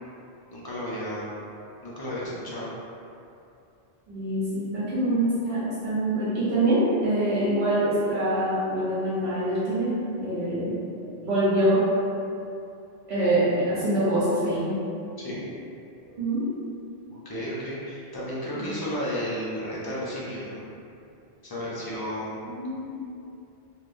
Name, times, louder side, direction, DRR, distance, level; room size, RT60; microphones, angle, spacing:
voice 1, 0.5-1.3 1.8-2.7 15.2-15.4 17.2-20.7 21.4-22.4, equal, 30° left, -8 dB, 0.5 m, -33 dB
voice 2, 4.1-9.9 10.2-10.8 11.2-11.8 13.0-14.8 16.2-16.5 18.5-18.8 22.4-23.1, right 1 dB, 85° right, -11 dB, 1.0 m, -25 dB
3.4 x 2.5 x 2.5 m, 2.6 s
omnidirectional pair, 1.1 m